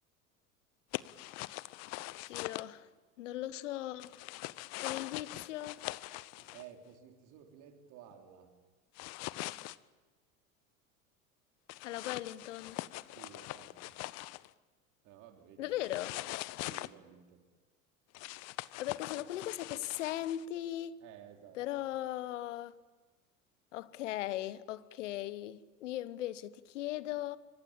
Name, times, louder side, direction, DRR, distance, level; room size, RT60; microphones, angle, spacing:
sound 1, 0.9-2.6 4.0-6.6 9.0-9.8 11.7-14.5 15.8-16.9 18.1-20.4, left 20 dB, 35° left, 0.8 m, -42 dB
voice 1, 2.3-2.9 3.2-4.2 4.8-5.9 11.8-12.8 15.6-16.2 18.8-21.0 21.5-22.7 23.7-27.4, left 13 dB, 60° left, 1.2 m, -38 dB
voice 2, 6.4-8.6 13.1-14.0 15.0-15.8 16.6-17.5 19.2-19.5 21.0-21.6, right 9 dB, 45° right, 3.5 m, -55 dB
27.0 x 24.5 x 8.7 m
figure-of-eight pair, 75°, 42 cm